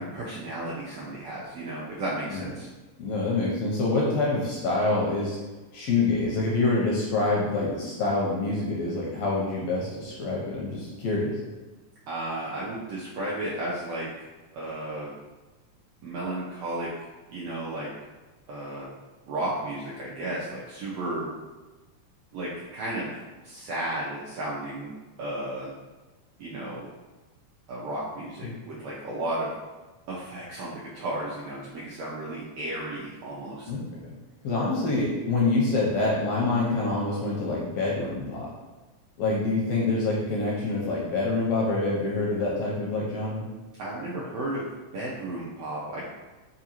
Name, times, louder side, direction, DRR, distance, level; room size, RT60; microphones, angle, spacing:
voice 1, 0.0-2.7 12.1-14.1 14.5-15.1 16.0-16.9 17.3-17.9 18.5-18.9 19.3-21.3 22.3-23.1 23.4-24.9 25.2-25.7 26.4-26.9 27.7-29.5 30.1-33.7 43.8-44.7 44.9-46.0, right 1 dB, 80° right, -6 dB, 1.4 m, -33 dB
voice 2, 3.0-5.4 5.7-11.4 28.4-28.5 33.7-33.8 34.4-38.5 39.2-43.5, left 3 dB, 80° left, -4 dB, 1.5 m, -26 dB
4.8 x 2.4 x 2.8 m, 1.2 s
omnidirectional pair, 3.4 m